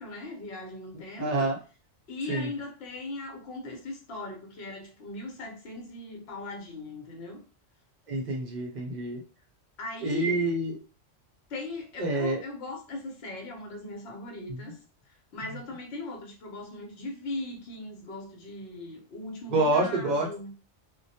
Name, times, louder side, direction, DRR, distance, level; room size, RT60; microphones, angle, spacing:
voice 1, 0.0-1.5 2.1-7.4 9.8-10.5 11.5-14.8 15.1-20.5, left 2 dB, 60° left, 2 dB, 0.9 m, -39 dB
voice 2, 1.2-1.6 2.3-2.5 8.1-9.2 10.0-10.7 12.0-12.4 19.5-20.3, right 2 dB, 55° right, 0 dB, 0.5 m, -27 dB
2.2 x 2.1 x 2.7 m, 0.36 s
omnidirectional pair, 1.3 m